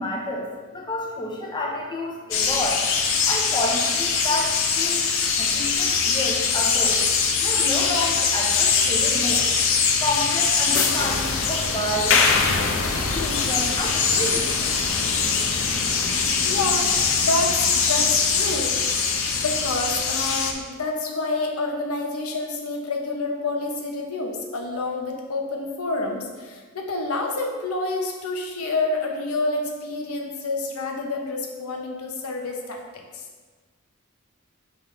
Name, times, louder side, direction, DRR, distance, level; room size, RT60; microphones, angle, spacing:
voice 1, 0.0-2.8 3.2-5.1 5.4-7.0 7.4-9.5 10.0-12.2 12.9-14.5, left 1 dB, 20° left, -1 dB, 0.9 m, -29 dB
sound 1, 2.3-20.5, left 5 dB, 65° left, 0.6 m, -22 dB
voice 2, 16.4-18.8 19.3-33.2, left 2 dB, 85° left, 2 dB, 0.9 m, -28 dB
5.7 x 5.3 x 3.3 m, 1.4 s
head